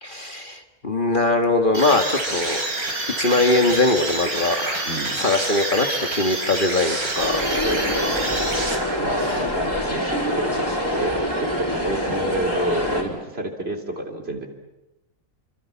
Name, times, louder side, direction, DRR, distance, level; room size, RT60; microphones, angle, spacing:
voice 1, 0.0-2.6 3.2-7.4 9.2-9.4, left 2 dB, 35° left, 5 dB, 1.8 m, -22 dB
sound 1, 1.7-9.3, right 2 dB, 80° right, 5.1 m, -27 dB
voice 2, 4.8-5.3 7.6-8.4 9.0-14.5, right 1 dB, 45° right, 4 dB, 3.5 m, -29 dB
sound 2, 7.2-13.0, left 1 dB, 15° left, 4.5 m, -25 dB
29.5 x 25.0 x 7.1 m, 0.96 s
omnidirectional pair, 1.5 m